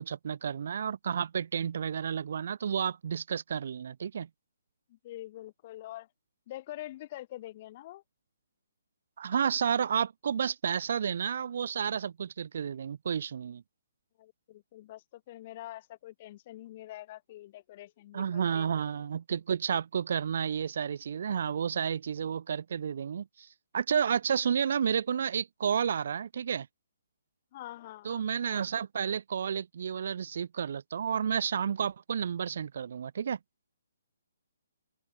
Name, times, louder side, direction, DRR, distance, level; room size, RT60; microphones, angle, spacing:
voice 1, 0.0-4.3 9.2-13.6 18.1-23.5 23.7-26.7 28.0-33.4, right 7 dB, 55° right, 0.8 m, -31 dB
voice 2, 4.9-6.1 6.5-8.0 14.2-18.7 27.5-28.6, left 15 dB, 30° left, 3.4 m, -45 dB
open air
hypercardioid pair, 165°, 0 cm